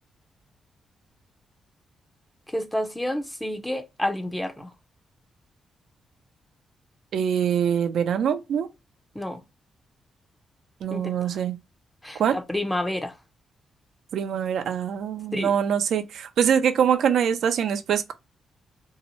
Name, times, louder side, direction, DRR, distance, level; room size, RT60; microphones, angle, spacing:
voice 1, 2.5-4.7 9.1-9.4 10.9-11.4 12.0-13.1 15.3-15.5, left 1 dB, 10° left, 0.5 m, -29 dB
voice 2, 7.1-8.7 10.8-11.6 12.2-12.4 14.1-18.1, right 8 dB, 75° right, 0.4 m, -24 dB
2.7 x 2.0 x 2.8 m
cardioid pair, 90°, 0 cm